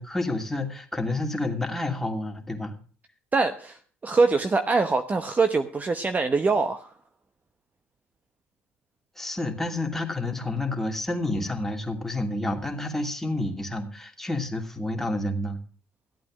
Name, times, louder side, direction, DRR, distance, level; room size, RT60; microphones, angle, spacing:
voice 1, 0.0-2.7 9.2-15.6, left 2 dB, 5° left, 2 dB, 2.8 m, -29 dB
voice 2, 3.3-6.9, right 4 dB, 25° right, 8 dB, 0.9 m, -24 dB
14.5 x 8.5 x 6.3 m, 0.42 s
supercardioid pair, 75°, 6 cm